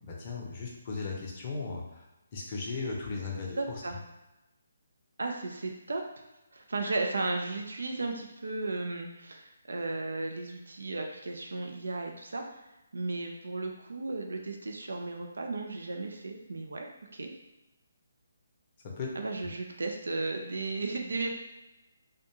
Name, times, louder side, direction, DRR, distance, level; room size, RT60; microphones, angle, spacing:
voice 1, 0.0-2.1 2.3-4.0 18.8-19.1, left 4 dB, 35° left, -2 dB, 0.6 m, -37 dB
voice 2, 3.6-4.0 5.2-6.0 6.5-12.6 12.9-16.9 17.1-17.3 19.2-21.3, right 3 dB, 70° right, 2 dB, 0.4 m, -35 dB
2.4 x 2.1 x 2.9 m, 0.98 s
figure-of-eight pair, 140°, 0 cm